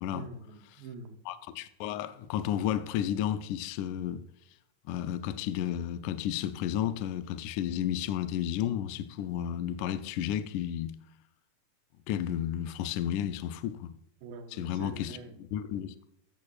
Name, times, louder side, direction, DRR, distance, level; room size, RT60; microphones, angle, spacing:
voice 1, 0.1-1.2 14.2-15.4, right 4 dB, 75° right, 2.5 m, -45 dB
voice 2, 1.3-4.2 4.9-11.0 12.1-13.9 14.5-15.2 15.5-16.0, left 10 dB, 90° left, 1.7 m, -32 dB
15.0 x 6.4 x 2.4 m
omnidirectional pair, 4.3 m